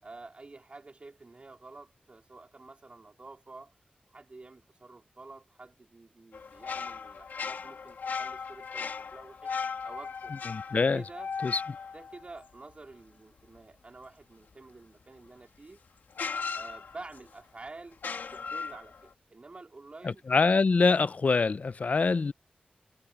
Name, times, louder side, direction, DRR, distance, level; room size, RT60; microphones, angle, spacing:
voice 1, 0.0-3.8 4.1-9.6 9.8-10.3 10.7-11.3 11.9-15.8 16.5-18.0 18.3-20.2, right 3 dB, 40° right, 3.5 m, -49 dB
sound 1, 6.3-12.9 15.3-15.4 16.1-17.3 17.9-19.1, left 5 dB, 90° left, 2.3 m, -37 dB
voice 2, 10.5-11.0 11.4-11.6 20.0-22.3, left 4 dB, 50° left, 0.5 m, -25 dB
wide cardioid pair, 90°, 3 cm